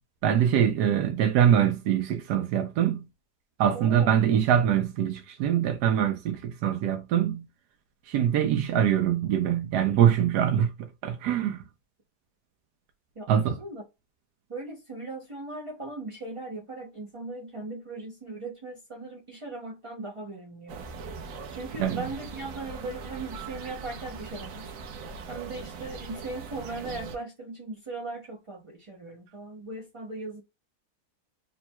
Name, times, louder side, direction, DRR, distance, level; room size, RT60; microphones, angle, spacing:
voice 1, 0.2-3.0 3.6-7.4 8.1-11.6 13.3-13.6 21.8-22.0, right 9 dB, 85° right, 1.2 m, -24 dB
voice 2, 3.7-4.2 11.4-11.5 13.2-13.8 14.5-20.9 21.5-24.7 25.3-30.4, right 2 dB, 40° right, 0.4 m, -38 dB
sound 1, 20.7-27.2, right 5 dB, 65° right, 1.0 m, -40 dB
3.3 x 2.2 x 4.3 m
omnidirectional pair, 1.7 m